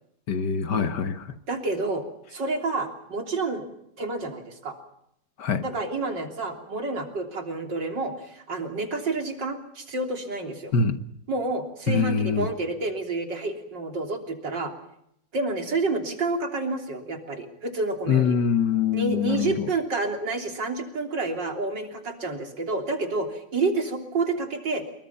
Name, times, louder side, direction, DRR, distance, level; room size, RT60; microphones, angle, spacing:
voice 1, 0.3-1.4 5.4-5.6 10.7-11.0 11.9-12.5 18.1-19.7, left 6 dB, 65° left, 2.1 m, -24 dB
voice 2, 1.5-2.0 2.3-3.7 4.0-4.8 5.6-10.7 11.3-14.7 15.3-18.4 18.9-24.8, right 3 dB, 70° right, 4.0 m, -29 dB
27.5 x 23.5 x 5.7 m
omnidirectional pair, 2.0 m